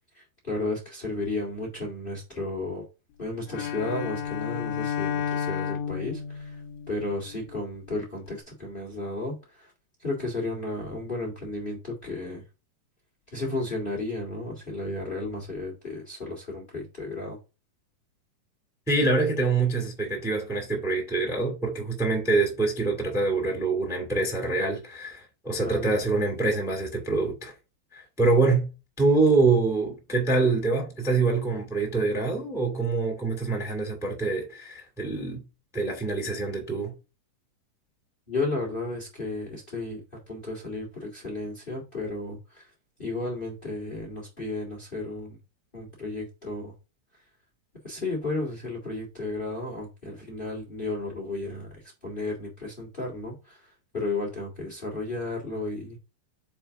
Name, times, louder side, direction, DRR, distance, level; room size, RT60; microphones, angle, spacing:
voice 1, 0.1-2.8 3.2-6.6 6.9-9.7 10.0-12.4 13.3-17.4 25.6-25.9 38.3-42.7 43.0-45.4 45.7-46.7 47.8-56.0, left 2 dB, 20° left, 1.3 m, -33 dB
Bowed string instrument, 3.5-7.7, left 8 dB, 80° left, 2.8 m, -32 dB
voice 2, 18.9-27.5 27.9-28.7 29.0-35.4 35.7-36.9, right 3 dB, 5° right, 0.4 m, -25 dB
7.0 x 3.3 x 4.7 m
omnidirectional pair, 5.0 m